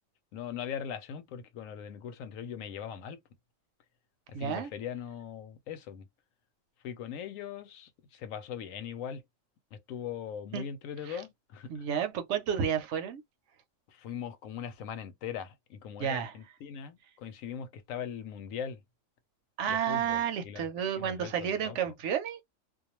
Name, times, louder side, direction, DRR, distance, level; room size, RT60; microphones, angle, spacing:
voice 1, 0.3-3.2 4.3-6.1 6.8-9.2 9.7-11.9 13.9-18.8 19.7-20.7 21.0-21.9, left 8 dB, 85° left, 1.0 m, -40 dB
voice 2, 4.3-4.7 10.5-10.6 11.1-11.2 11.7-13.2 16.0-16.3 19.6-22.4, right 8 dB, 70° right, 0.9 m, -31 dB
2.4 x 2.2 x 2.9 m
omnidirectional pair, 1.4 m